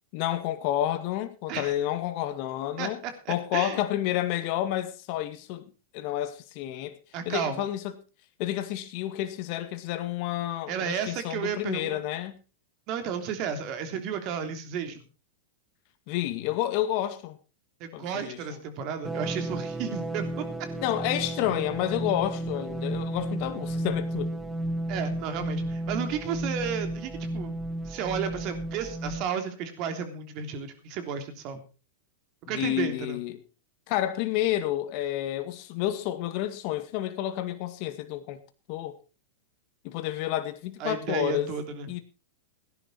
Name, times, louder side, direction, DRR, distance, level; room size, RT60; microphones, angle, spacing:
voice 1, 0.1-3.0 3.3-7.0 7.3-7.9 8.4-12.4 16.1-17.4 17.9-18.6 20.8-24.3 32.5-33.4 33.9-38.4 38.7-39.0 39.8-41.5 41.9-42.0, left 13 dB, 50° left, 2.0 m, -30 dB
voice 2, 2.8-3.8 7.1-7.6 10.7-12.0 12.9-15.0 17.8-20.2 24.9-27.5 27.8-31.6 32.5-33.2 40.8-41.9, right 7 dB, 45° right, 3.3 m, -33 dB
sound 1, 19.0-29.2, right 1 dB, 15° right, 1.7 m, -33 dB
17.5 x 11.0 x 4.5 m
hypercardioid pair, 115°, 0 cm